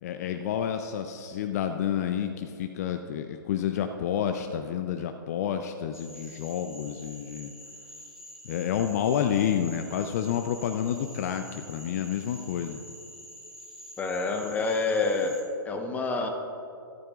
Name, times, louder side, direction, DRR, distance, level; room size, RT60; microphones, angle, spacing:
voice 1, 0.0-7.5 8.4-12.8, left 9 dB, 45° left, 7 dB, 0.5 m, -29 dB
Cricket / Frog, 5.9-15.4, equal, 5° right, 1.9 m, -47 dB
voice 2, 14.0-15.4 15.6-16.3, left 3 dB, 15° left, 3 dB, 1.0 m, -27 dB
14.5 x 13.5 x 2.5 m, 2.7 s
figure-of-eight pair, 120°, 12 cm